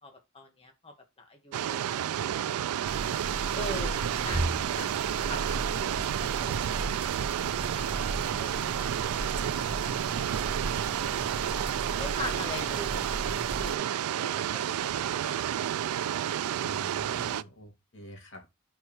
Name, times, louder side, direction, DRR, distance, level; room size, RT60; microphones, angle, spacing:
voice 1, 0.0-2.3 3.6-4.9 5.3-6.6 7.4-8.5 8.9-9.3 9.6-9.8 10.4-11.2 12.0-15.6, left 2 dB, 25° left, 1.7 m, -43 dB
sound 1, 1.5-17.4, right 10 dB, 90° right, 0.3 m, -31 dB
sound 2, 2.9-13.8, right 2 dB, 25° right, 1.0 m, -36 dB
voice 2, 16.6-18.6, equal, 55° left, 2.6 m, -47 dB
5.5 x 4.7 x 4.5 m
head